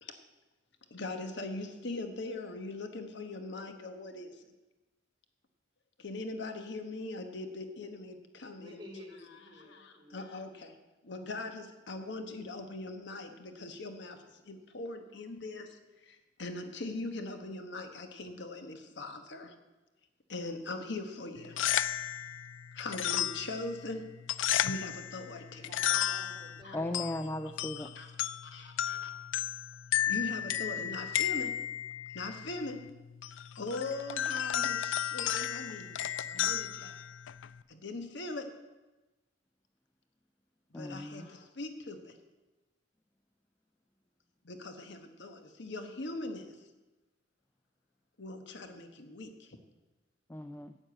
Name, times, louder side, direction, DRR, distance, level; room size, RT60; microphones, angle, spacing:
voice 1, 0.9-4.5 6.0-8.8 9.2-10.8 11.0-19.5 20.3-21.6 22.7-24.1 24.6-25.7 26.6-26.8 27.8-28.1 28.4-29.1 30.1-31.6 32.1-32.9 33.3-37.0 37.7-38.6 40.7-42.2 44.4-46.6 48.2-49.6, left 2 dB, 65° left, 7 dB, 1.1 m, -41 dB
voice 2, 8.6-10.2 25.5-27.1, equal, 25° right, -3 dB, 3.8 m, -51 dB
sound 1, 21.4-37.6, left 11 dB, 80° left, 0.4 m, -34 dB
voice 3, 26.7-27.9 40.7-41.3 50.3-50.8, left 1 dB, 10° left, 9 dB, 0.4 m, -37 dB
9.9 x 8.8 x 7.7 m, 1.1 s
head